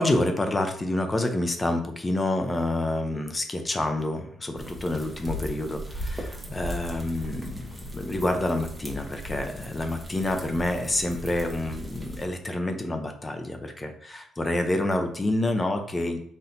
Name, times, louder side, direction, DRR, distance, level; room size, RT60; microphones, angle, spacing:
voice 1, 0.0-16.2, left 1 dB, 25° left, 5 dB, 0.6 m, -28 dB
sound 1, 4.6-12.3, equal, 10° right, 1.0 m, -37 dB
4.2 x 2.7 x 3.9 m, 0.67 s
cardioid pair, 90°, 0 cm